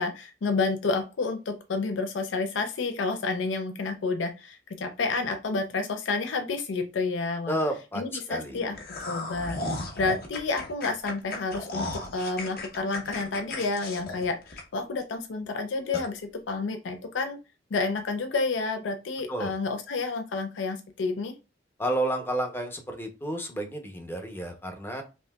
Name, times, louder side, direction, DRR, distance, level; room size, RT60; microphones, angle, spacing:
voice 1, 0.0-7.6 7.9-8.8 9.0-17.4 17.7-21.3, left 3 dB, 70° left, 0.5 m, -30 dB
voice 2, 7.5-8.0 8.3-8.6 19.3-19.5 21.8-25.0, right 1 dB, 10° left, 0.6 m, -31 dB
sound 1, 8.7-15.0 15.4-15.5 15.9-16.1, left 2 dB, 50° left, 0.8 m, -35 dB
5.4 x 2.7 x 2.2 m
head